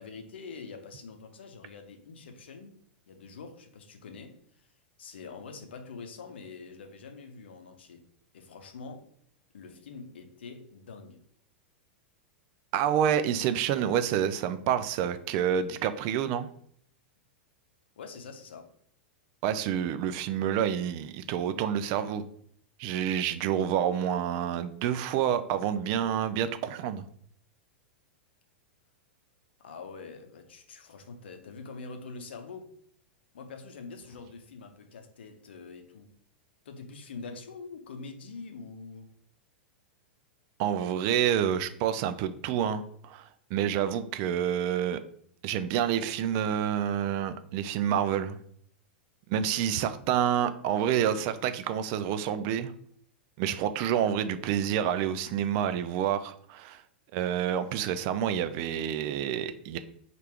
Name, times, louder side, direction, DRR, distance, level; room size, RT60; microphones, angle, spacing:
voice 1, 0.0-2.8 3.1-4.7 5.0-8.1 8.3-9.1 9.5-11.2 18.0-18.7 29.6-32.7 33.3-36.2 36.6-39.1, left 4 dB, 70° left, 0.7 m, -45 dB
voice 2, 12.7-16.5 19.4-22.2 22.8-27.0 40.6-45.0 45.4-48.4 49.3-52.7 53.4-56.8 57.1-59.8, right 9 dB, 45° right, 0.4 m, -28 dB
3.3 x 2.5 x 4.4 m
figure-of-eight pair, 100°, 6 cm